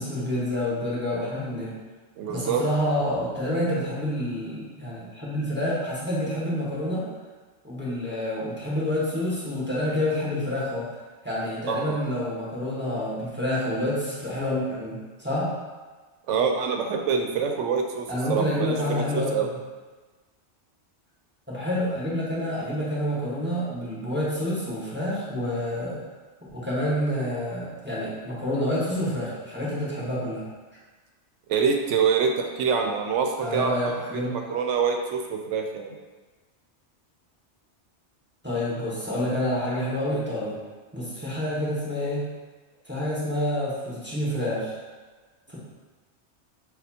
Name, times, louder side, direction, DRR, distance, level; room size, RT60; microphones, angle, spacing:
voice 1, 0.0-1.7 2.3-7.0 7.6-10.9 11.2-15.5 18.1-19.4 21.5-26.0 26.4-30.4 33.4-34.3 38.4-40.6 40.9-42.2 42.9-44.8 45.5-45.6, left 1 dB, 10° right, -8 dB, 1.0 m, -28 dB
voice 2, 2.2-2.6 11.7-12.0 16.3-19.0 19.3-19.5 31.5-35.9, right 6 dB, 85° right, 3 dB, 0.9 m, -26 dB
6.6 x 2.4 x 2.7 m, 1.3 s
omnidirectional pair, 1.2 m